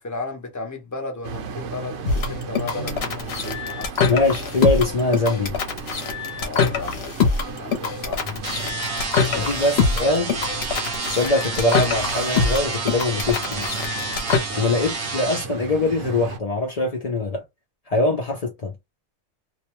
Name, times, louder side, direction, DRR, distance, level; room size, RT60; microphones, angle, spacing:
voice 1, 0.0-4.1 6.4-7.2 7.5-8.2 9.3-9.6 10.0-10.2 14.5-14.7, left 3 dB, 20° left, 0.5 m, -34 dB
sound 1, 1.2-16.4, right 5 dB, 65° right, 0.9 m, -35 dB
sound 2, 2.0-14.4, left 5 dB, 55° left, 0.9 m, -24 dB
voice 2, 4.1-5.6 8.3-8.4 9.4-10.4 11.1-13.7 14.6-17.4 17.9-18.7, left 2 dB, 75° left, 0.3 m, -23 dB
sound 3, 8.4-15.4, right 3 dB, 35° right, 0.6 m, -30 dB
2.5 x 2.2 x 2.9 m
omnidirectional pair, 1.5 m